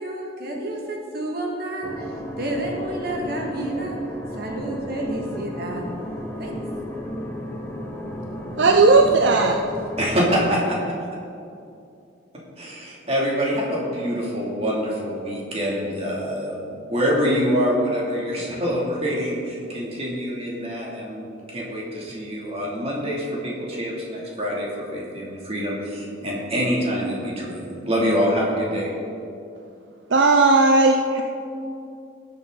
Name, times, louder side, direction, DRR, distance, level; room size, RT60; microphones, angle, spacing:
voice 1, 0.0-2.1 2.4-4.0 4.3-5.9 6.4-6.6, right 1 dB, 55° right, -1 dB, 1.8 m, -30 dB
sound 1, 1.8-10.4, left 1 dB, 10° left, 1.4 m, -33 dB
voice 2, 8.6-9.6 30.1-31.2, right 3 dB, 70° right, 3 dB, 0.6 m, -16 dB
voice 3, 10.0-10.8 12.6-28.9, equal, 35° right, -4 dB, 2.7 m, -25 dB
18.5 x 8.3 x 3.9 m, 2.6 s
head